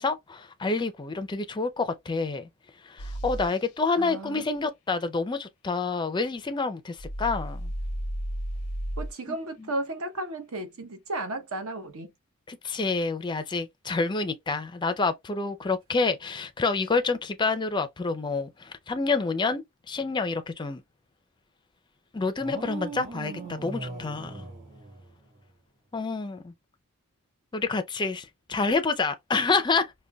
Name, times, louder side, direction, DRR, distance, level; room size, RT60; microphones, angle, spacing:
voice 1, 0.0-2.5 2.8-7.7 9.3-9.7 12.5-20.8 22.1-24.5 25.9-26.5 27.5-29.9, left 4 dB, 20° left, 0.4 m, -28 dB
sound 1, 3.0-3.5 7.0-9.1, equal, 85° left, 0.6 m, -33 dB
voice 2, 4.0-4.4 9.0-12.1, right 2 dB, 65° right, 0.9 m, -34 dB
sound 2, 22.4-25.5, right 3 dB, 50° right, 1.6 m, -39 dB
5.1 x 2.2 x 2.2 m
head